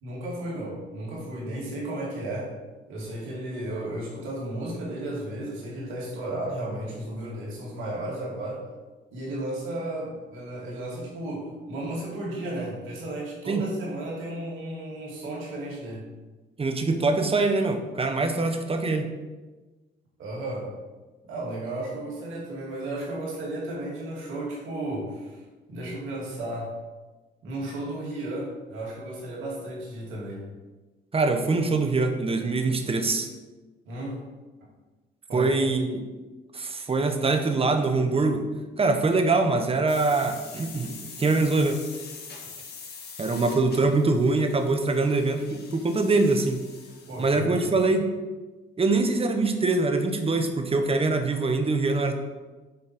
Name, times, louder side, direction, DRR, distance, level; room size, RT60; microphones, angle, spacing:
voice 1, 0.0-2.5 2.9-8.6 9.1-16.0 20.2-20.7 21.2-25.4 25.7-26.7 27.4-30.5 33.9-34.2 35.3-35.7 47.1-47.7, right 1 dB, 90° right, -4 dB, 2.5 m, -34 dB
voice 2, 16.6-19.1 31.1-33.3 35.3-36.0 36.5-38.5 38.8-41.8 43.2-46.6 47.2-48.1 48.8-52.2, right 3 dB, 30° right, 6 dB, 1.1 m, -23 dB
sound 1, 39.9-47.4, left 5 dB, 55° left, 1.6 m, -44 dB
7.8 x 4.2 x 5.9 m, 1.2 s
cardioid pair, 90°, 20 cm